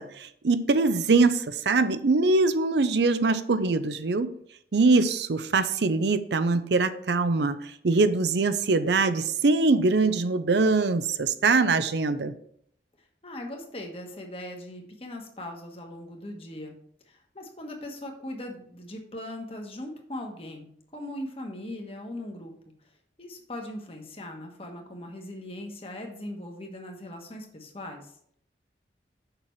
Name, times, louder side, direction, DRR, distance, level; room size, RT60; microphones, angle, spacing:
voice 1, 0.0-4.3 4.7-7.6 7.8-12.3, right 3 dB, 70° right, 12 dB, 0.6 m, -23 dB
voice 2, 13.2-16.7 17.1-22.5 23.2-28.1, left 1 dB, 30° left, 2 dB, 1.3 m, -39 dB
6.8 x 5.8 x 4.6 m, 0.66 s
head